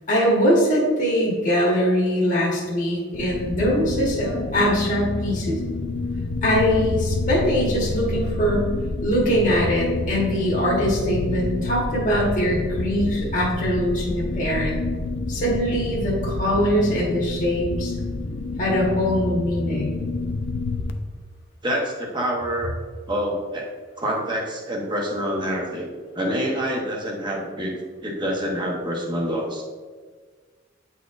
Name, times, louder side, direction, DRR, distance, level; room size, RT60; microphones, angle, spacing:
voice 1, 0.1-5.6 6.4-8.7 9.0-14.8 15.3-17.9 18.6-20.0, equal, 40° left, -5 dB, 1.4 m, -22 dB
sound 1, 3.1-20.9, left 2 dB, 80° left, 0.5 m, -28 dB
voice 2, 21.6-22.7 23.1-23.7 24.0-25.9 26.1-27.7 28.0-29.6, equal, 25° right, -1 dB, 0.9 m, -26 dB
9.1 x 4.2 x 2.5 m, 1.5 s
head